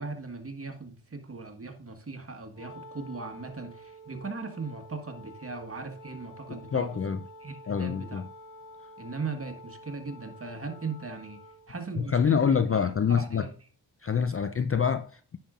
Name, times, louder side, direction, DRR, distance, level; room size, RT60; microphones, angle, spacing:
voice 1, 0.0-7.0 7.4-8.2 9.0-12.4 13.1-13.5, right 4 dB, 30° right, 1.4 m, -38 dB
Wind instrument woodwind instrument, 2.5-11.7, equal, 85° left, 0.9 m, -49 dB
voice 2, 6.7-7.2 7.7-8.3 12.0-13.4 14.0-15.4, left 6 dB, 30° left, 0.5 m, -26 dB
9.9 x 5.7 x 2.5 m
supercardioid pair, 45°, 47 cm